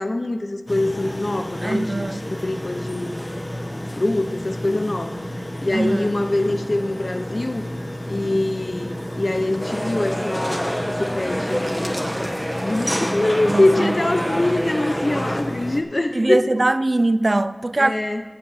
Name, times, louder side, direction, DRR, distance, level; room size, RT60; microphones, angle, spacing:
voice 1, 0.0-3.2 4.0-5.2 5.6-7.6 8.1-12.1 12.6-16.4 17.8-18.2, left 2 dB, 65° left, 0.7 m, -24 dB
sound 1, 0.7-15.8, left 1 dB, 25° left, 1.0 m, -31 dB
voice 2, 1.6-2.2 5.7-6.2 13.5-13.9 16.1-17.9, right 2 dB, 65° right, 0.4 m, -21 dB
sound 2, 9.6-15.4, equal, ahead, 1.2 m, -27 dB
8.8 x 6.8 x 7.5 m
wide cardioid pair, 50°, 0 cm